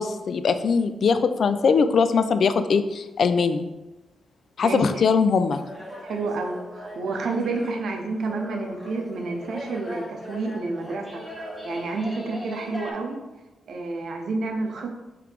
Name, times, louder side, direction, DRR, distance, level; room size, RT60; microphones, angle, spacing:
voice 1, 0.0-3.7 4.6-5.6, left 5 dB, 65° left, 10 dB, 0.3 m, -21 dB
voice 2, 4.6-5.0 6.0-11.2 11.6-13.2 13.7-15.0, right 3 dB, 75° right, 3 dB, 0.7 m, -29 dB
sound 1, 5.5-12.9, equal, ahead, 1.4 m, -39 dB
4.8 x 3.2 x 3.4 m, 1.1 s
cardioid pair, 70°, 0 cm